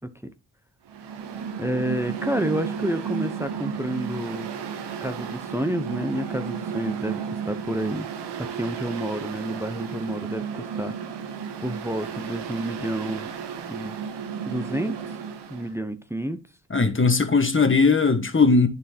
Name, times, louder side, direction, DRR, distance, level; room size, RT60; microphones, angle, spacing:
Mechanical fan, 0.9-15.7, right 7 dB, 85° right, 1.0 m, -33 dB
voice 1, 1.6-4.5 5.0-8.1 8.4-10.9 11.6-13.3 13.7-14.0 14.5-15.0 15.5-16.4, right 1 dB, 5° right, 0.8 m, -29 dB
voice 2, 16.7-18.7, left 4 dB, 30° left, 1.4 m, -19 dB
10.5 x 4.5 x 2.9 m
supercardioid pair, 45°, 40 cm